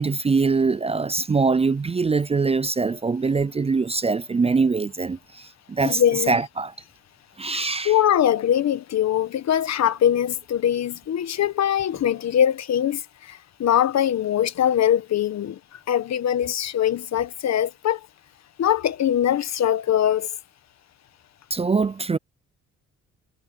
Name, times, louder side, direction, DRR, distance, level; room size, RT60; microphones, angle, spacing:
voice 1, 0.0-6.0 6.3-6.7 7.4-7.9 21.5-22.2, right 4 dB, 20° right, 0.5 m, -23 dB
voice 2, 5.8-6.4 7.5-18.0 18.6-20.3, left 10 dB, 60° left, 1.3 m, -22 dB
cardioid pair, 90°, 30 cm